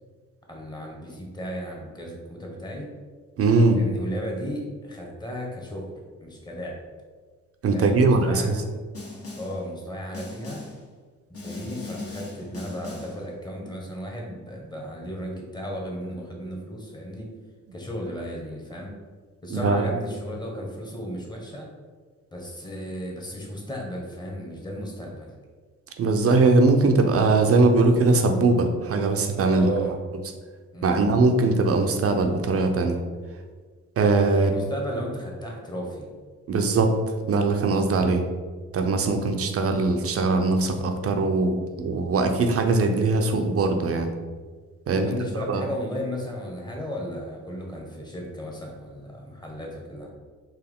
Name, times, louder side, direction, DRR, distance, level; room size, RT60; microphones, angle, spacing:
voice 1, 0.5-2.9 3.7-5.9 6.2-6.8 7.7-8.5 9.4-10.6 11.4-17.3 17.7-18.9 19.4-21.7 22.3-25.3 29.5-30.0 30.7-31.1 34.3-36.1 45.0-50.1, equal, 15° left, -1 dB, 1.2 m, -34 dB
voice 2, 3.4-3.8 7.6-8.6 19.5-19.9 26.0-29.7 30.8-33.0 34.0-34.5 36.5-36.9 37.3-38.2 38.7-44.1 44.9-45.1 45.5-45.6, right 3 dB, 50° right, 5 dB, 0.6 m, -21 dB
Snare drum, 8.9-9.6 10.1-10.8 11.3-13.2, left 3 dB, 50° left, 1.5 m, -38 dB
4.6 x 3.0 x 3.6 m, 1.5 s
cardioid pair, 90°, 30 cm